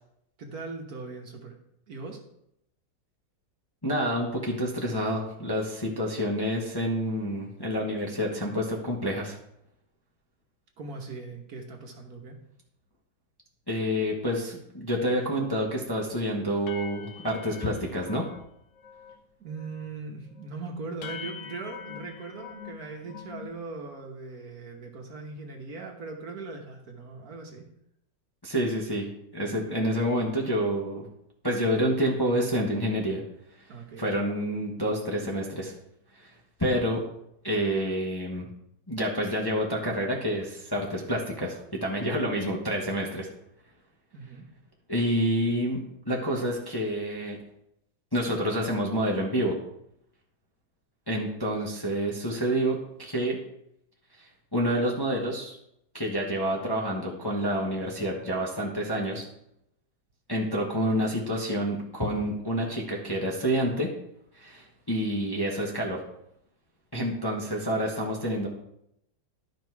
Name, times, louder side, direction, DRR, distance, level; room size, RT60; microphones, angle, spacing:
voice 1, 0.4-1.6 1.9-2.2 10.8-12.4 19.4-27.7 33.7-34.1 44.1-44.5, right 3 dB, 55° right, 2 dB, 1.5 m, -40 dB
voice 2, 3.8-9.4 13.7-18.2 28.4-29.1 29.3-31.1 31.4-33.2 34.0-35.7 36.1-36.3 36.6-37.0 37.4-38.5 38.9-43.3 44.9-47.4 48.1-49.6 51.1-53.4 54.2-55.6 55.9-59.2 60.3-63.9 64.3-66.0 66.9-68.5, equal, 15° left, -2 dB, 1.0 m, -28 dB
sound 1, 15.1-15.2 15.6-15.9 16.2-16.3 16.7-18.5 18.8-19.2 19.5-19.9 20.4-20.5 21.0-23.6, left 7 dB, 60° left, 0.8 m, -44 dB
12.0 x 5.2 x 4.6 m, 0.78 s
omnidirectional pair, 2.0 m